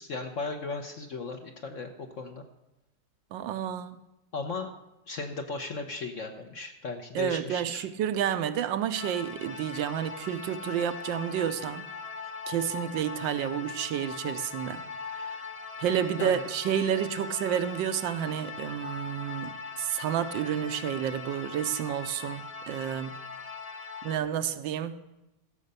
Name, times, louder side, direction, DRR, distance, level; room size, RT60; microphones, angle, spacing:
voice 1, 0.0-2.4 4.3-4.7 5.1-7.9 16.2-16.4, left 3 dB, 55° left, 0.9 m, -36 dB
voice 2, 3.3-4.0 7.1-11.9 12.5-14.8 15.2-15.3 15.8-23.2 24.0-25.0, right 9 dB, 80° right, 1.4 m, -30 dB
sound 1, 8.9-24.2, left 5 dB, 35° left, 0.5 m, -40 dB
15.0 x 6.5 x 6.7 m
omnidirectional pair, 2.0 m